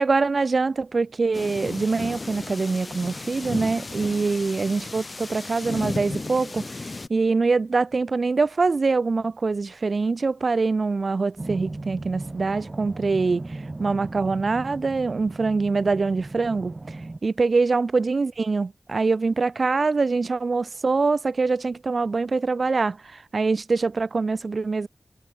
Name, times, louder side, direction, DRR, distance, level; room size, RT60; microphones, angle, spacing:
voice 1, 0.0-17.0 17.2-24.9, right 4 dB, 70° right, 0.6 m, -24 dB
sound 1, 1.3-7.1, left 3 dB, 50° left, 4.4 m, -34 dB
sound 2, 11.4-17.2, right 2 dB, 45° right, 2.7 m, -36 dB
cardioid pair, 45°, 0 cm